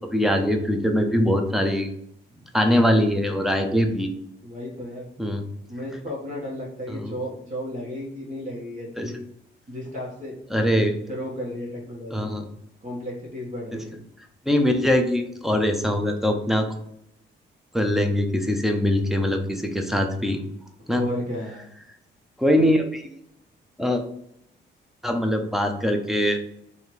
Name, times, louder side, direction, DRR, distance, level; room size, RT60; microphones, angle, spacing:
voice 1, 0.1-1.9 2.5-4.1 5.2-5.4 6.9-7.1 9.0-9.1 10.5-11.0 12.1-12.5 13.7-13.8 14.5-16.7 17.7-20.4 20.9-21.0 22.4-23.1 23.8-24.0 25.0-26.4, equal, ahead, 4 dB, 0.7 m, -22 dB
voice 2, 4.4-5.1 5.7-9.2 9.7-10.4 10.7-12.3 12.8-14.0 20.9-21.6, left 1 dB, 40° right, -3 dB, 1.5 m, -33 dB
3.2 x 2.8 x 4.5 m, 0.73 s
cardioid pair, 90°, 20 cm